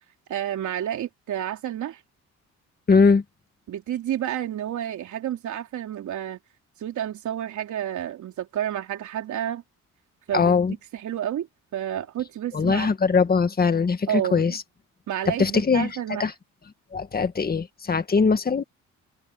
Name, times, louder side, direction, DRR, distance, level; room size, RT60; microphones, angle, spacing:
voice 1, 0.3-2.0 3.7-6.4 6.8-9.6 10.3-10.5 10.9-11.5 11.7-12.9 14.1-14.6 15.1-16.3, right 11 dB, 75° right, 3.5 m, -30 dB
voice 2, 2.9-3.2 10.3-10.7 12.5-14.6 15.4-16.3 16.9-18.6, left 5 dB, 30° left, 1.9 m, -21 dB
cardioid pair, 90°, 30 cm